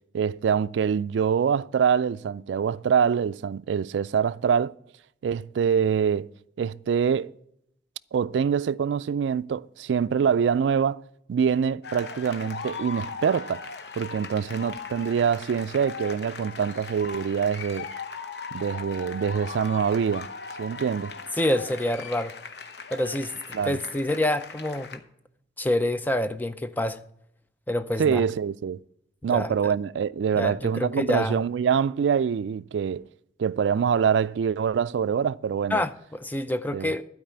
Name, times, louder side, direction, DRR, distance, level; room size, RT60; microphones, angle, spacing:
voice 1, 0.1-4.7 5.2-6.3 6.6-7.3 8.1-11.0 11.3-13.6 14.0-17.9 18.5-20.3 20.6-21.1 23.5-23.8 28.0-28.8 29.2-33.0 33.4-35.8 36.7-36.9, right 7 dB, 80° right, 0.3 m, -25 dB
sound 1, 11.8-25.0, left 5 dB, 65° left, 0.9 m, -39 dB
voice 2, 21.4-22.3 22.9-23.3 23.6-25.0 25.6-27.0 27.7-28.3 29.2-29.7 30.4-31.4 35.7-37.0, left 1 dB, 10° left, 0.4 m, -27 dB
12.5 x 4.8 x 8.7 m
head